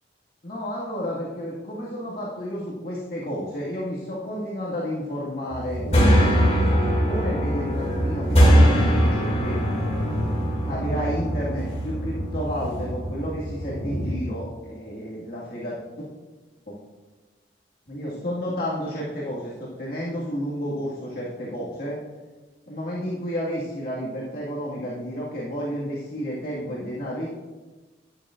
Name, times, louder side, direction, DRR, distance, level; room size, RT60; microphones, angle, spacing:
voice 1, 0.4-9.6 10.6-15.8 16.7-16.8 17.9-22.0 22.7-27.3, equal, 55° left, -7 dB, 1.8 m, -31 dB
sound 1, 5.5-14.1, equal, 35° left, 2.6 m, -22 dB
12.0 x 10.0 x 2.5 m, 1.2 s
head